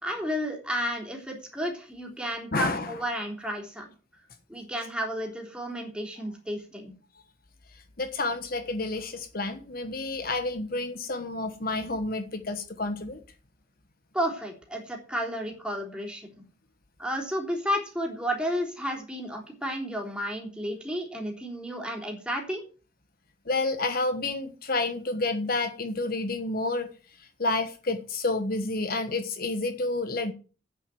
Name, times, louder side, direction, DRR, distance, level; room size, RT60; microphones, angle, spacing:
voice 1, 0.0-3.9 4.5-6.9 14.1-16.3 17.0-22.6, equal, 5° right, 0 dB, 3.6 m, -32 dB
voice 2, 2.5-2.9 8.0-13.2 23.5-26.9 27.4-30.3, left 2 dB, 50° left, 8 dB, 1.3 m, -29 dB
9.0 x 8.3 x 7.8 m, 0.36 s
head